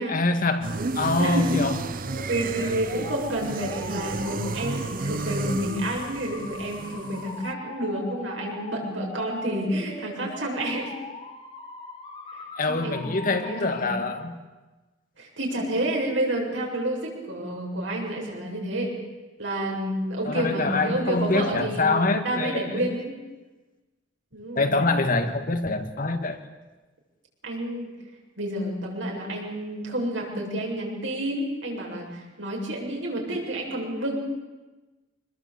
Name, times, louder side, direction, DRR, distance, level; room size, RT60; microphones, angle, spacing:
voice 1, 0.0-1.8 12.6-14.4 20.2-22.8 24.6-26.4, left 3 dB, 45° left, 7 dB, 2.0 m, -25 dB
sound 1, 0.6-7.5, right 3 dB, 50° right, 0.8 m, -32 dB
voice 2, 1.2-1.6 2.3-10.9 12.3-14.1 15.2-18.9 19.4-23.1 24.3-24.8 27.4-27.9 28.4-34.2, right 1 dB, 85° right, -1 dB, 7.6 m, -29 dB
sound 2, 2.0-13.8, left 3 dB, 30° left, 4.1 m, -41 dB
26.0 x 21.0 x 8.4 m, 1.2 s
head